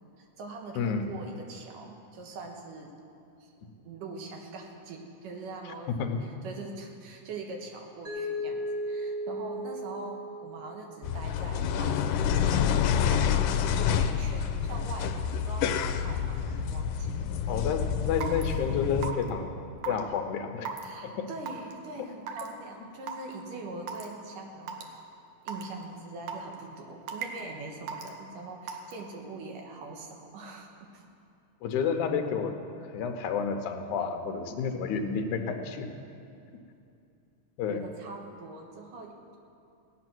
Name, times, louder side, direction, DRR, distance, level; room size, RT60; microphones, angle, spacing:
voice 1, 0.2-2.9 3.4-3.5 3.8-6.1 6.4-15.1 15.4-17.3 20.8-24.9 25.4-31.1 37.7-39.4, right 3 dB, 80° right, 2 dB, 2.9 m, -43 dB
voice 2, 0.8-1.1 5.9-6.2 17.5-19.5 19.9-20.7 21.0-21.3 22.0-22.1 31.6-32.6 32.9-35.9 37.6-37.8, left 6 dB, 75° left, 6 dB, 2.3 m, -30 dB
Mallet percussion, 8.1-11.0, equal, 35° right, 2.6 m, -35 dB
sound 1, 11.0-19.1, left 8 dB, 90° left, 2.3 m, -28 dB
Raindrop / Water tap faucet / Drip, 18.2-18.4 19.0-19.3 19.8-20.0 20.6-20.8 21.5-21.7 22.3-22.5 23.1-23.2 23.9-24.0 24.7-24.8 25.5-25.6 26.3-26.5 27.1-27.4 27.9-28.1 28.7-28.9, right 7 dB, 65° right, 1.8 m, -35 dB
17.0 x 9.7 x 6.1 m, 2.6 s
omnidirectional pair, 3.8 m